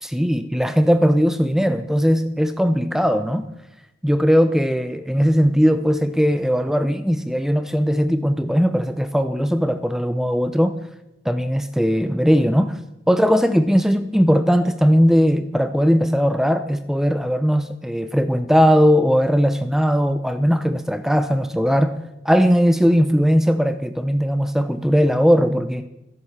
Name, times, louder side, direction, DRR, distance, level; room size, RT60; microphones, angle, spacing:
voice 1, 0.0-3.5 4.0-10.8 11.2-12.8 13.1-22.0 22.2-25.9, equal, ahead, 10 dB, 0.6 m, -18 dB
15.0 x 11.0 x 7.3 m, 0.91 s
head